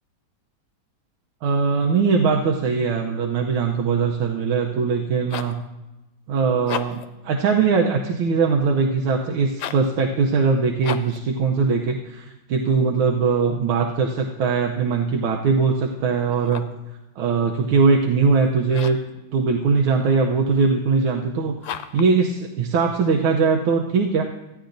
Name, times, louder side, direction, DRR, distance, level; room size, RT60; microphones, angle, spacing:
voice 1, 1.4-5.6 6.3-16.7 17.2-19.0 19.3-24.2, right 5 dB, 90° right, 1 dB, 1.6 m, -21 dB
sound 1, 5.0-5.6 6.5-7.2 9.5-9.9 10.8-11.2 16.3-16.8 18.7-19.1 21.6-22.1, left 9 dB, 75° left, 1.3 m, -33 dB
16.0 x 9.8 x 2.6 m, 1.0 s
omnidirectional pair, 2.2 m